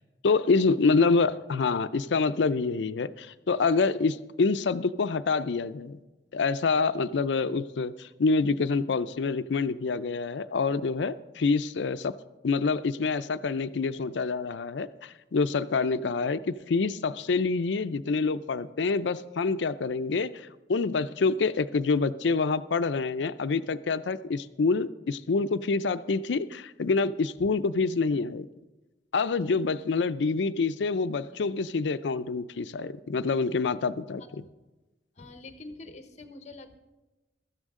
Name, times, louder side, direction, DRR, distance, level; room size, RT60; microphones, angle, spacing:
voice 1, 0.2-6.0 6.3-12.2 12.4-28.5 29.1-34.2, left 4 dB, 80° left, 13 dB, 0.5 m, -27 dB
voice 2, 35.2-36.8, left 2 dB, 40° left, 8 dB, 1.0 m, -45 dB
15.5 x 13.0 x 3.7 m, 1.1 s
head